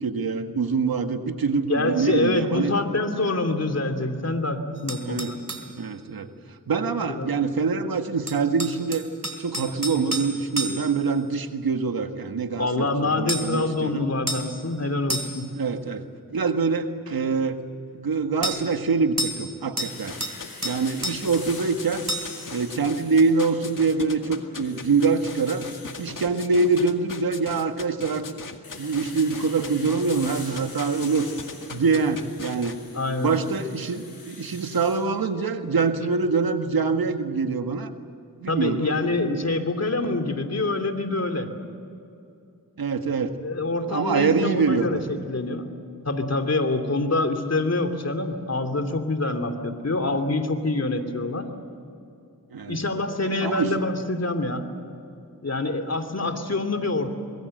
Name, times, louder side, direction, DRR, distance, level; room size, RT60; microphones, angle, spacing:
voice 1, 0.0-2.7 5.0-5.3 5.7-6.3 6.7-9.1 9.4-14.1 15.5-16.0 16.3-17.6 17.9-20.1 20.6-22.1 22.5-25.7 26.0-28.3 28.8-31.3 31.7-32.8 33.2-37.9 38.4-39.5 42.8-43.4 43.9-45.0 52.5-52.8 53.4-53.7, right 4 dB, 80° right, 7 dB, 1.8 m, -25 dB
voice 2, 1.7-5.4 7.1-7.3 12.6-15.5 32.9-33.3 38.5-41.5 43.4-45.7 46.0-51.5 52.7-54.7 55.4-57.1, left 2 dB, 45° left, 6 dB, 2.9 m, -26 dB
sound 1, 4.9-5.7 8.3-11.0 13.3-13.6 14.3-14.5 15.1-15.5 18.4-18.6 19.2-19.5 19.8-20.4 20.6-21.2 22.1-22.4, right 1 dB, 50° right, 3.3 m, -30 dB
sound 2, 19.8-24.1 24.5-26.1 28.6-35.0, left 3 dB, 80° left, 6.7 m, -44 dB
sound 3, 20.0-32.8, left 5 dB, 60° left, 2.1 m, -39 dB
25.0 x 22.0 x 7.9 m, 2.7 s
cardioid pair, 55°, 35 cm